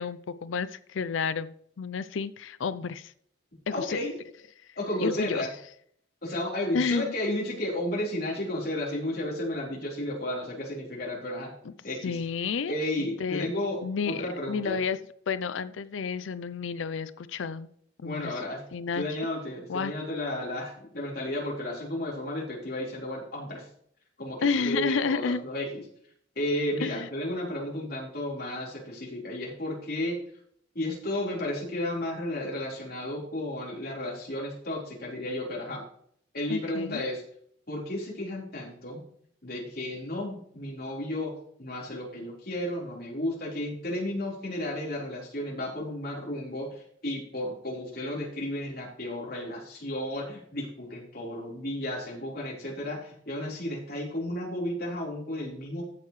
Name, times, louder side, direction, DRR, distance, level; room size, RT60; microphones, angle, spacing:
voice 1, 0.0-3.1 3.7-4.0 5.0-5.5 6.7-7.1 11.6-11.7 12.0-12.7 13.0-13.5 13.8-15.0 15.3-17.7 18.0-18.4 18.7-19.0 19.7-19.9 24.4-25.4 26.8-27.1 36.5-37.0, left 5 dB, 85° left, 15 dB, 0.5 m, -31 dB
voice 2, 3.7-4.1 4.8-5.5 6.2-11.5 11.8-12.2 12.7-14.8 18.0-18.6 19.0-23.7 24.2-25.8 26.4-30.2 30.7-35.8 36.3-37.2 37.7-39.0 39.4-41.3 41.6-55.8, left 1 dB, 50° left, -3 dB, 4.1 m, -33 dB
15.0 x 6.6 x 3.2 m, 0.65 s
head